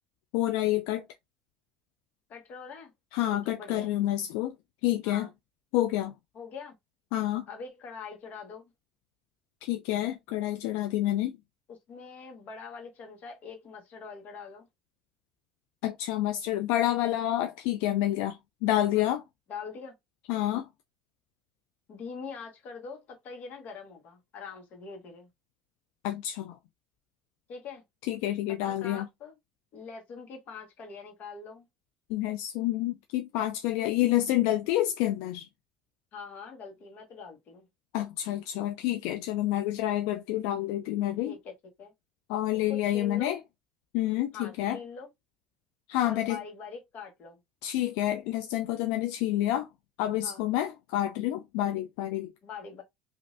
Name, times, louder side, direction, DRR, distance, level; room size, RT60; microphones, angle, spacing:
voice 1, 0.3-1.1 3.1-4.5 4.8-5.3 5.7-6.1 7.1-7.5 9.6-11.4 15.8-19.2 20.3-20.7 26.0-26.6 28.0-29.1 32.1-35.5 37.9-41.3 42.3-43.4 43.9-44.8 45.9-46.4 47.6-49.7 50.0-52.3, left 14 dB, 80° left, 0.3 m, -28 dB
voice 2, 2.3-2.9 3.3-3.9 5.0-5.3 6.3-6.7 7.5-8.7 11.7-14.7 18.9-19.1 19.5-19.9 21.9-25.3 27.5-27.8 28.7-29.3 29.7-31.7 36.1-37.7 41.2-41.5 41.8-41.9 42.7-43.4 44.3-45.1 46.0-47.4 50.2-50.4 52.4-52.8, left 5 dB, 55° left, 1.2 m, -43 dB
3.1 x 2.5 x 2.5 m
supercardioid pair, 95°, 3 cm